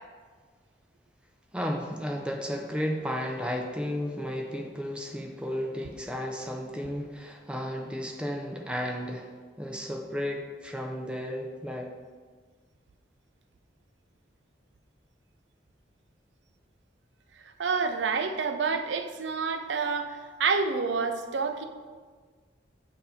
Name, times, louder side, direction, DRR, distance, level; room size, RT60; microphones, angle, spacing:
voice 1, 1.5-9.3 9.6-11.9, equal, 5° right, 2 dB, 0.5 m, -33 dB
voice 2, 17.6-21.7, right 5 dB, 80° right, 7 dB, 0.5 m, -28 dB
6.5 x 2.7 x 5.6 m, 1.5 s
head